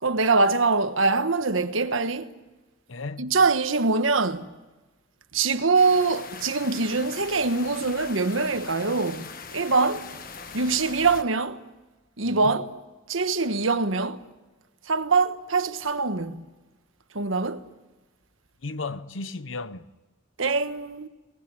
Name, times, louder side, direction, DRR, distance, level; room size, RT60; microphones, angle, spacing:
voice 1, 0.0-2.3 3.2-4.5 5.3-10.1 10.5-11.6 12.2-12.7 13.1-14.2 14.9-16.4 17.1-17.7 20.4-21.1, right 4 dB, 85° right, 1.3 m, -23 dB
voice 2, 2.9-3.3 12.2-12.6 18.6-19.9, left 3 dB, 75° left, 1.0 m, -35 dB
sound 1, 5.7-11.2, left 5 dB, 45° left, 1.4 m, -41 dB
24.5 x 19.5 x 9.3 m
head